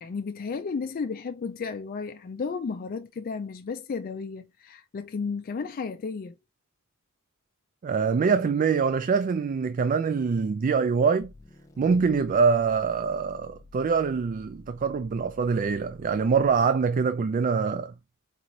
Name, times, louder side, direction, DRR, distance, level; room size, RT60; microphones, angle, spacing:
voice 1, 0.0-6.4, left 5 dB, 40° left, 0.4 m, -33 dB
voice 2, 7.8-11.3 11.8-17.9, right 5 dB, 40° right, 0.3 m, -24 dB
sound 1, 11.2-16.8, left 3 dB, 15° left, 0.7 m, -52 dB
4.1 x 3.1 x 3.8 m
head